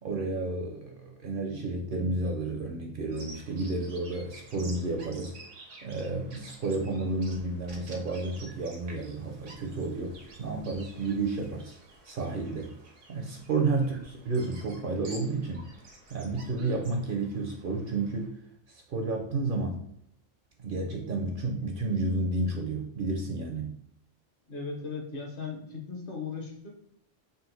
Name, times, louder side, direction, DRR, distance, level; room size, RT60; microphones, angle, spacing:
voice 1, 0.0-5.3 5.8-11.8 12.0-12.7 13.1-15.7 16.1-18.3 18.7-19.8 20.6-23.8, right 3 dB, 60° right, 2 dB, 0.6 m, -31 dB
Bird vocalization bird call bird song, 3.1-18.3, right 2 dB, 90° right, 1.2 m, -51 dB
voice 2, 24.5-26.7, left 4 dB, 55° left, 1 dB, 0.9 m, -37 dB
3.9 x 2.4 x 3.9 m, 0.72 s
omnidirectional pair, 1.2 m